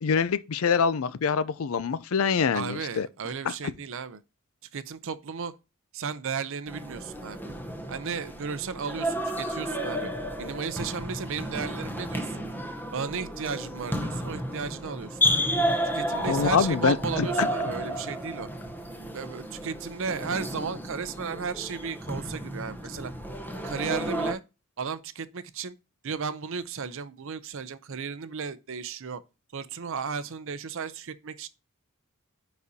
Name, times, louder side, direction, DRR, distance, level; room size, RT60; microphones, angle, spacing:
voice 1, 0.0-3.1 3.5-3.6 16.3-17.0 17.4-17.5, left 6 dB, 65° left, 0.4 m, -25 dB
voice 2, 2.5-4.2 4.7-5.5 5.9-7.4 7.9-10.1 10.4-12.4 12.9-15.4 15.9-18.5 19.1-23.1 23.6-24.4 24.8-25.8 26.0-29.2 29.5-31.5, right 6 dB, 60° right, 0.6 m, -34 dB
sound 1, 6.7-24.3, equal, 10° left, 0.8 m, -32 dB
9.5 x 4.1 x 2.7 m
head